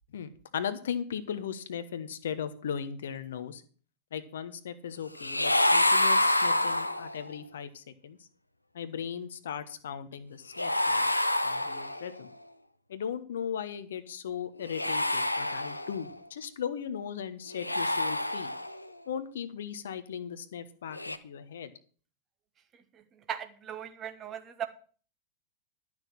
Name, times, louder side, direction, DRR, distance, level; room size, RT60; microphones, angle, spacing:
voice 1, 0.1-3.6 4.1-8.3 8.7-11.0 11.4-12.3 12.9-18.5 19.1-21.7, left 8 dB, 60° left, 12 dB, 1.1 m, -37 dB
sound 1, 5.2-7.3 10.5-12.2 14.6-16.1 17.5-18.9 20.9-21.2, left 1 dB, 85° left, 0.6 m, -27 dB
voice 2, 23.3-24.7, right 9 dB, 30° right, 8 dB, 1.3 m, -38 dB
11.5 x 6.2 x 7.3 m, 0.42 s
figure-of-eight pair, 90°, 0 cm